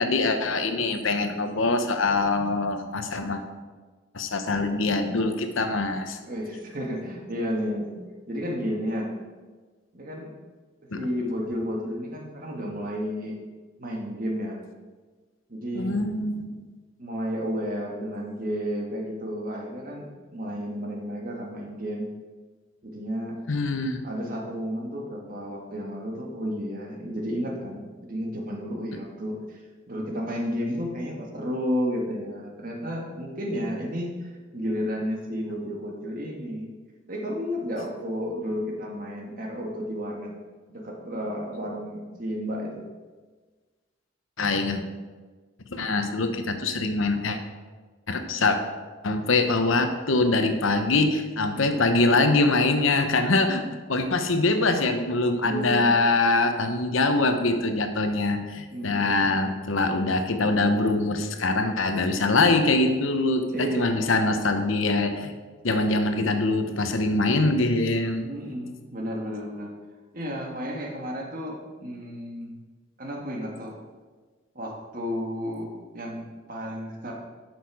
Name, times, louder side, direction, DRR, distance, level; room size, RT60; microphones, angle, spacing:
voice 1, 0.0-3.4 4.1-6.2 10.9-11.0 15.7-16.5 23.5-24.0 44.4-44.8 45.7-47.4 48.1-48.6 49.0-53.6 53.9-65.3 65.6-68.3, left 2 dB, 80° left, 7 dB, 0.9 m, -23 dB
voice 2, 6.2-8.0 8.3-9.1 9.9-10.3 10.9-13.4 13.8-14.6 15.5-16.0 17.0-22.1 22.8-23.4 24.0-29.6 29.9-36.7 37.1-40.3 40.7-42.8 51.5-51.8 55.4-56.0 58.7-59.2 63.5-64.0 68.2-69.7 70.1-72.6 73.0-73.7 74.5-77.1, equal, 45° right, 0 dB, 1.7 m, -32 dB
10.5 x 6.5 x 4.8 m, 1.4 s
head